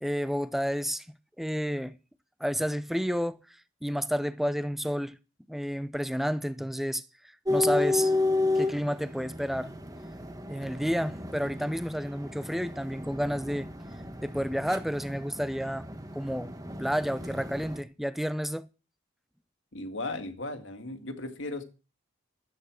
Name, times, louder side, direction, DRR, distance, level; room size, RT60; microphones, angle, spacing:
voice 1, 0.0-1.9 2.4-3.4 3.8-5.2 5.5-7.0 7.5-8.1 8.6-9.7 10.5-13.7 14.2-15.9 16.1-16.5 16.8-18.7, equal, ahead, 0.6 m, -30 dB
sound 1, 7.5-17.8, left 2 dB, 20° right, 1.4 m, -32 dB
voice 2, 19.7-21.6, left 2 dB, 70° left, 2.0 m, -36 dB
13.5 x 9.2 x 6.2 m
head